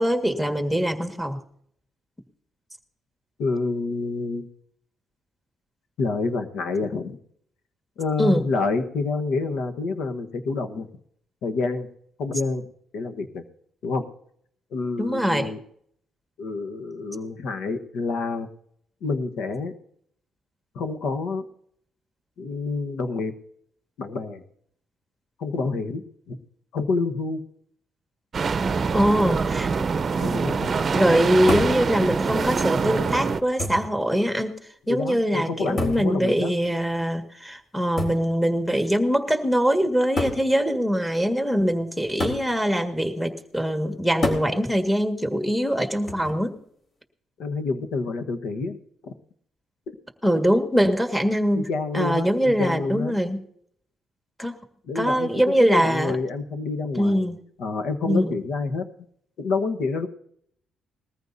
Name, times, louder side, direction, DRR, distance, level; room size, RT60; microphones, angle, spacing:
voice 1, 0.0-1.4 8.2-8.5 15.0-15.5 28.9-29.9 30.9-34.6 34.9-46.6 50.2-51.7 51.9-53.4 54.4-54.6 55.0-56.2 57.0-57.4 58.0-58.3, equal, 5° left, 6 dB, 1.8 m, -23 dB
voice 2, 3.4-4.5 6.0-7.2 8.0-10.9 11.4-11.9 12.2-12.7 12.9-13.4 13.8-14.0 14.7-15.6 16.4-18.5 19.0-19.7 20.7-21.4 22.4-23.3 24.0-24.4 25.4-26.4 26.7-27.4 30.2-30.7 34.9-36.5 47.4-48.8 49.0-49.1 51.5-53.2 54.9-55.3 55.6-57.2 57.6-58.8 59.4-60.1, left 3 dB, 80° left, 8 dB, 1.3 m, -28 dB
sound 1, 28.3-33.4, right 5 dB, 40° right, 0.7 m, -24 dB
sound 2, 31.5-31.8 32.8-32.9 33.6-34.0 35.8-36.1 38.0-38.3 39.3-39.4 40.2-40.5 42.2-42.5 44.2-44.5 46.1-46.5, left 2 dB, 50° left, 3.8 m, -27 dB
20.5 x 14.5 x 2.7 m, 0.67 s
cardioid pair, 90°, 0 cm